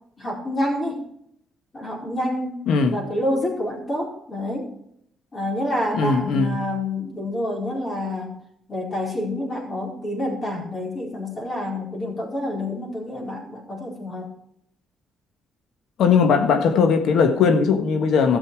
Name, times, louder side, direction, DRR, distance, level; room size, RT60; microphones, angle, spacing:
voice 1, 0.2-1.0 1.7-2.6 2.9-4.7 5.3-8.3 8.7-14.3, left 1 dB, 35° left, 4.4 m, -28 dB
voice 2, 2.7-3.0 5.9-6.6 16.0-18.4, left 5 dB, 75° left, 1.5 m, -19 dB
14.0 x 7.0 x 4.7 m
cardioid pair, 90°, 0 cm